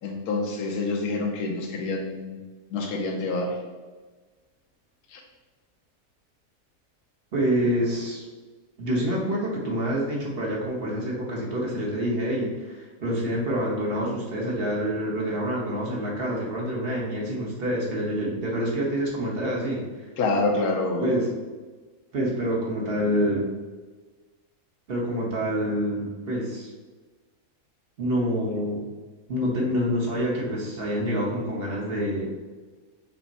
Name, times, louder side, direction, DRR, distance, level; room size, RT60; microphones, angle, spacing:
voice 1, 0.0-2.4 2.7-3.6 5.1-5.2 20.2-21.2, left 2 dB, 85° left, 1 dB, 1.2 m, -27 dB
voice 2, 7.3-8.2 8.8-19.8 21.0-21.3 22.1-23.5 24.9-26.7 28.0-28.8 29.3-32.3, equal, 45° right, -3 dB, 1.1 m, -27 dB
5.9 x 2.1 x 4.1 m, 1.3 s
omnidirectional pair, 1.6 m